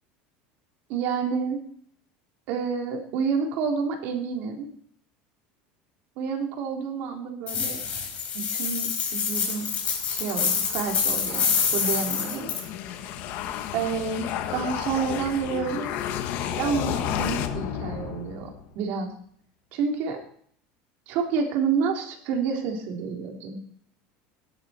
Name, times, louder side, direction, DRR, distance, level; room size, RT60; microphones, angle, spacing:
voice 1, 0.9-1.6 2.5-4.7 6.2-7.8 8.3-9.7 10.1-12.5 12.9-13.0 13.7-15.9 16.6-18.5 18.7-19.1 19.7-20.2 21.1-23.6, right 6 dB, 55° right, 2 dB, 3.5 m, -29 dB
sound 1, 7.5-12.6, left 6 dB, 30° left, 4.7 m, -27 dB
sound 2, 9.4-18.7, left 9 dB, 55° left, 1.6 m, -33 dB
17.0 x 12.0 x 4.4 m, 0.62 s
cardioid pair, 155°, 4 cm